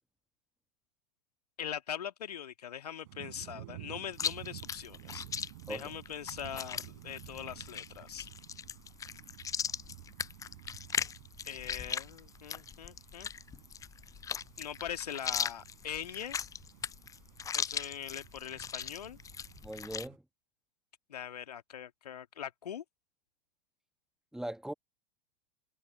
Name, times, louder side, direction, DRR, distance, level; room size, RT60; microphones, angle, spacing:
voice 1, 1.6-5.3 5.7-8.3 11.5-13.3 14.6-16.4 17.5-19.2 21.1-22.8, left 9 dB, 65° left, 2.1 m, -42 dB
sound 1, 3.0-20.2, right 20 dB, 50° right, 5.2 m, -53 dB
Chewing mastication, 4.1-20.1, left 7 dB, 15° left, 0.6 m, -39 dB
voice 2, 19.6-20.2 24.3-24.7, right 1 dB, ahead, 1.7 m, -39 dB
figure-of-eight pair, 90°, 21 cm